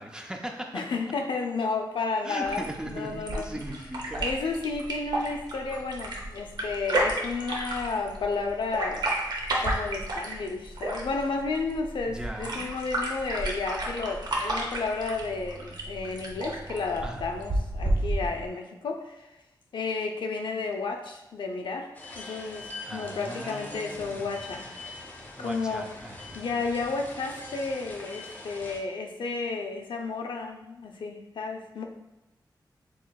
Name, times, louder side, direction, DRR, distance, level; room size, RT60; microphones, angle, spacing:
voice 1, 0.0-0.8 2.2-4.3 12.1-12.7 17.0-17.2 22.8-24.3 25.4-26.4, right 1 dB, 10° right, 3 dB, 0.4 m, -38 dB
voice 2, 0.7-3.5 4.2-9.0 9.6-19.4 19.7-21.9 22.2-24.6 25.4-25.9 26.3-31.8, left 4 dB, 90° left, 2 dB, 0.6 m, -32 dB
sound 1, 2.4-18.5, right 1 dB, 60° right, 0.7 m, -32 dB
sound 2, 21.9-28.8, left 2 dB, 20° left, 0.7 m, -43 dB
6.2 x 3.6 x 2.3 m, 0.93 s
wide cardioid pair, 165°, 8 cm